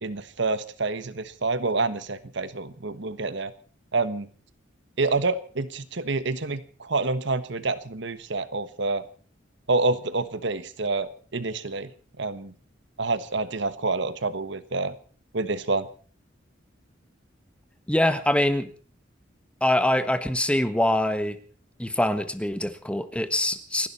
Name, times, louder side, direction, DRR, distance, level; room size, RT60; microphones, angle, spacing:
voice 1, 0.0-3.5 3.9-4.3 5.0-9.0 9.7-11.9 12.2-12.5 13.0-14.9 15.3-15.9, right 3 dB, 70° right, 13 dB, 1.3 m, -27 dB
voice 2, 17.9-18.7 19.6-21.4 21.8-23.9, left 1 dB, 5° left, 11 dB, 1.3 m, -24 dB
29.0 x 11.5 x 4.3 m, 0.42 s
head